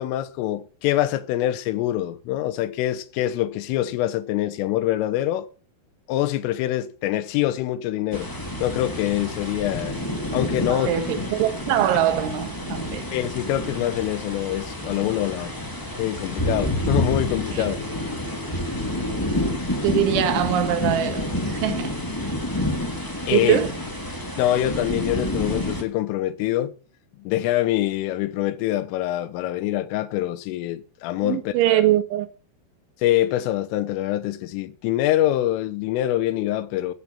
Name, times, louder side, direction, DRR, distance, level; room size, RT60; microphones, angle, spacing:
voice 1, 0.0-5.5 6.1-8.3 8.6-10.0 10.3-11.0 13.1-15.6 16.0-17.8 23.3-23.6 24.4-26.7 27.2-31.8 33.0-36.9, left 13 dB, 85° left, 3.6 m, -25 dB
sound 1, 8.1-25.8, left 1 dB, 10° left, 0.9 m, -28 dB
voice 2, 10.7-13.0 17.5-17.7 19.8-22.0 22.2-22.3 23.3-23.7 31.2-32.3, right 12 dB, 75° right, 3.6 m, -23 dB
15.0 x 8.3 x 7.1 m
omnidirectional pair, 5.6 m